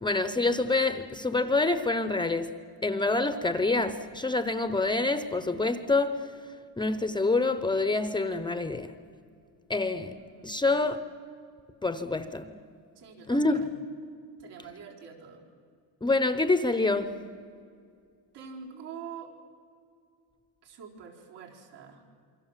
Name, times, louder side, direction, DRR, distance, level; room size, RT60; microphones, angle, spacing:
voice 1, 0.0-2.5 2.8-6.3 6.8-8.9 9.7-10.1 10.4-11.0 11.8-12.6 13.3-13.6 16.0-17.2, left 3 dB, 10° left, 0.7 m, -26 dB
voice 2, 10.0-10.7 12.9-13.7 14.4-15.4 18.3-19.3 20.6-22.0, right 6 dB, 75° right, 4.5 m, -45 dB
28.0 x 24.0 x 7.4 m
cardioid pair, 165°, 40 cm